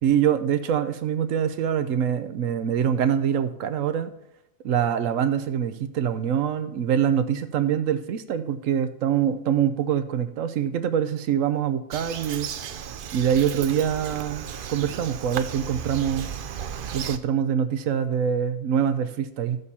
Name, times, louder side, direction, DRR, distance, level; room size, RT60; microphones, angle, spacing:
voice 1, 0.0-4.1 4.6-12.5 13.1-16.3 16.9-19.6, right 8 dB, 75° right, 11 dB, 1.1 m, -24 dB
Bird vocalization bird call bird song, 11.9-17.2, right 8 dB, 60° right, 0.6 m, -35 dB
14.0 x 6.9 x 4.2 m, 0.82 s
omnidirectional pair, 1.4 m